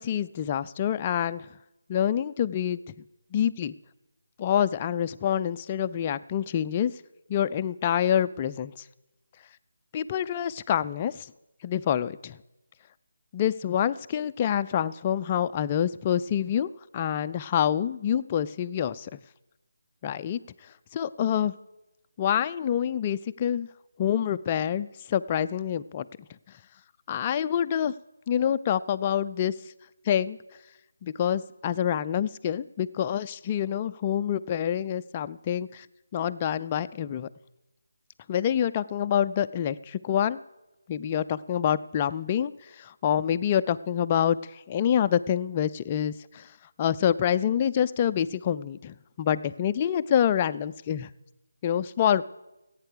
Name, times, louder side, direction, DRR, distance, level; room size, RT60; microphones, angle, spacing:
voice 1, 0.0-1.5 1.9-2.8 3.3-3.7 4.4-6.9 7.3-8.7 9.9-11.3 11.6-12.4 13.3-19.2 20.0-20.4 20.9-21.5 22.2-23.7 24.0-26.1 27.1-27.9 28.3-29.5 30.1-30.4 31.0-35.9 36.1-37.3 38.3-40.4 40.9-46.5 46.8-51.1 51.6-52.2, left 9 dB, 25° left, 12 dB, 0.4 m, -26 dB
15.5 x 8.8 x 6.8 m, 0.98 s
figure-of-eight pair, 155°, 0 cm